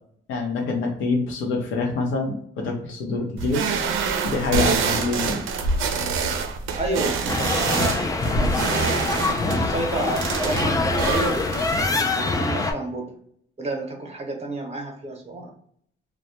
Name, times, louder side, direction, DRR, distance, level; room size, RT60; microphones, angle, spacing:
voice 1, 0.3-3.6 4.2-5.5, left 3 dB, 85° left, 1 dB, 0.7 m, -26 dB
sound 1, 3.4-11.9, right 5 dB, 85° right, 0.4 m, -26 dB
voice 2, 6.7-13.2 13.6-15.5, right 2 dB, 30° right, 2 dB, 0.8 m, -31 dB
sound 2, 7.3-12.7, left 3 dB, 20° left, 0.3 m, -24 dB
2.1 x 2.1 x 2.7 m, 0.65 s
cardioid pair, 90°, 20 cm